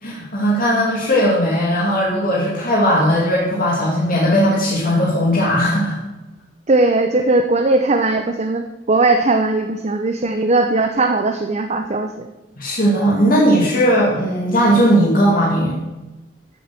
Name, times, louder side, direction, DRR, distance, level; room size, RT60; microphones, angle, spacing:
voice 1, 0.0-6.0 12.6-15.8, equal, 50° left, -5 dB, 2.7 m, -17 dB
voice 2, 6.7-12.3, right 2 dB, 40° right, 5 dB, 0.8 m, -18 dB
14.5 x 7.0 x 6.0 m, 1.1 s
head